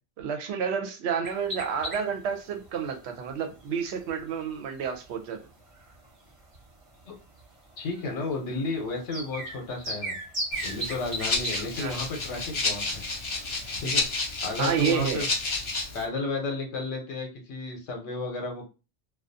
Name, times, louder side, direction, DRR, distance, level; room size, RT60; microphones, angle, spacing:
voice 1, 0.2-5.4 11.8-12.0 14.6-15.3, right 6 dB, 70° right, 6 dB, 0.8 m, -30 dB
sound 1, 1.2-14.1, right 1 dB, 30° right, 0.8 m, -40 dB
voice 2, 7.8-10.2 10.6-13.0 13.8-14.1 14.4-15.3 15.9-18.7, left 3 dB, 80° left, 2 dB, 1.0 m, -33 dB
Rattle (instrument), 10.5-16.0, left 3 dB, 45° left, 0.4 m, -31 dB
2.4 x 2.2 x 2.5 m, 0.30 s
omnidirectional pair, 1.2 m